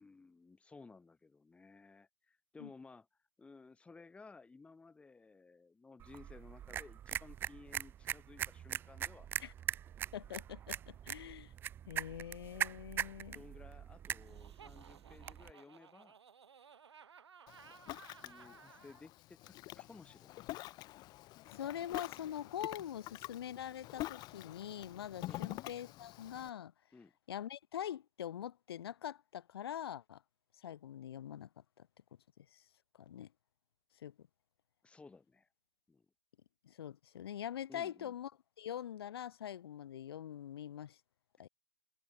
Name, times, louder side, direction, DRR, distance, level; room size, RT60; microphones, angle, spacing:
voice 1, 0.0-3.1 3.4-9.3 13.3-16.2 18.1-20.4 25.2-25.6 26.9-27.1 34.8-35.5 35.9-36.0 37.7-38.1, left 4 dB, 10° left, 3.1 m, -57 dB
sound 1, 6.0-15.5, right 10 dB, 15° right, 0.4 m, -42 dB
voice 2, 10.1-11.5 11.9-13.4 21.5-26.7 27.3-30.2 30.6-31.9 32.4-32.6 32.9-33.3 34.0-34.3 36.6-38.3 38.6-41.0 41.4-41.5, left 10 dB, 60° left, 0.9 m, -44 dB
Laughter, 14.2-19.0, right 7 dB, 70° right, 2.5 m, -58 dB
Ocean, 17.5-26.5, left 18 dB, 30° left, 1.7 m, -47 dB
figure-of-eight pair, 120°, 15 cm